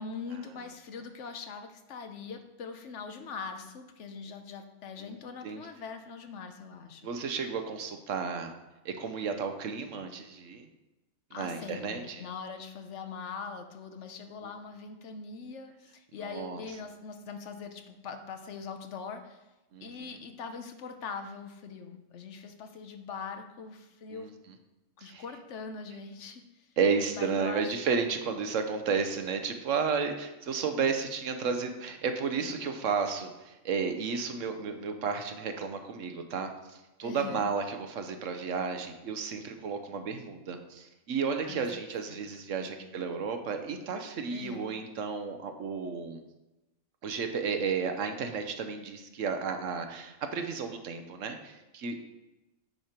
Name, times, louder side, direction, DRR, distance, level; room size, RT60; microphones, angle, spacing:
voice 1, 0.0-7.0 11.3-19.4 19.8-24.3 25.0-26.4 27.1-27.7 28.5-28.6 32.4-32.6 37.0-37.5 41.4-41.7 42.1-42.2 42.6-42.7 44.3-44.7, left 5 dB, 65° left, 7 dB, 1.1 m, -42 dB
voice 2, 7.0-8.5 8.8-10.7 11.3-12.2 14.4-14.5 16.2-16.6 19.7-20.2 24.1-24.3 25.0-25.2 26.8-46.2 47.0-52.0, right 5 dB, 75° right, 6 dB, 1.2 m, -33 dB
9.4 x 4.4 x 5.1 m, 1.0 s
omnidirectional pair, 1.3 m